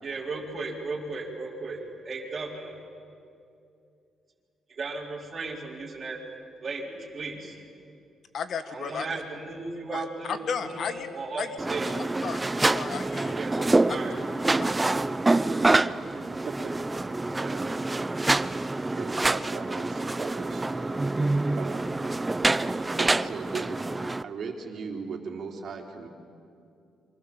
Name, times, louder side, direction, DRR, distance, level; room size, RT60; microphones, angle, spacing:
voice 1, 0.0-2.8 4.7-6.2 6.6-7.6 8.6-11.9 13.3-13.6 13.9-14.2 14.5-14.8, right 3 dB, 35° right, -4 dB, 4.2 m, -36 dB
voice 2, 8.3-9.1 9.9-10.0 10.5-11.1 11.4-11.5 12.2-13.4, left 6 dB, 60° left, 9 dB, 1.8 m, -33 dB
sound 1, 11.6-24.2, right 2 dB, 20° right, 0.6 m, -26 dB
voice 3, 18.9-21.1 21.5-21.9 23.0-23.8 24.2-26.1, right 5 dB, 55° right, 2 dB, 3.5 m, -38 dB
28.0 x 24.0 x 7.3 m, 2.5 s
cardioid pair, 90°, 0 cm